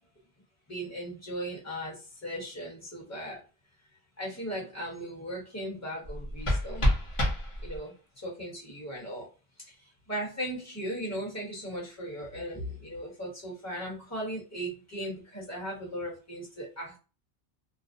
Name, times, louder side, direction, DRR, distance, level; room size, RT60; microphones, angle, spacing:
voice 1, 0.7-3.4 4.2-6.9 7.6-9.3 9.6-9.7 10.1-17.0, equal, 15° left, -3 dB, 1.0 m, -37 dB
sound 1, 6.0-8.0, left 1 dB, 35° left, 0.6 m, -29 dB
2.4 x 2.0 x 2.6 m, 0.33 s
omnidirectional pair, 1.1 m